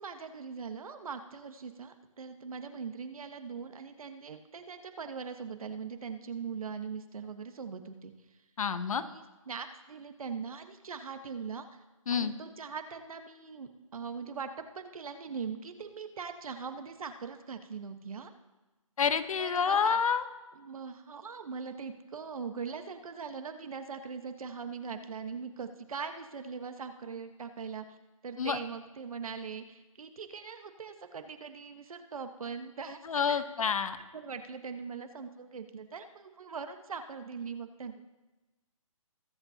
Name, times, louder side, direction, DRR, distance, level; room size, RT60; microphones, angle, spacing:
voice 1, 0.0-8.1 8.9-11.8 12.1-18.3 19.4-20.0 20.5-28.0 28.2-33.4 34.1-38.0, right 5 dB, 80° right, 7 dB, 1.3 m, -41 dB
voice 2, 8.6-9.0 12.1-12.3 19.0-20.2 28.4-28.6 33.1-34.0, left 6 dB, 75° left, 11 dB, 1.0 m, -28 dB
21.0 x 8.2 x 2.9 m, 1.1 s
hypercardioid pair, 160°, 18 cm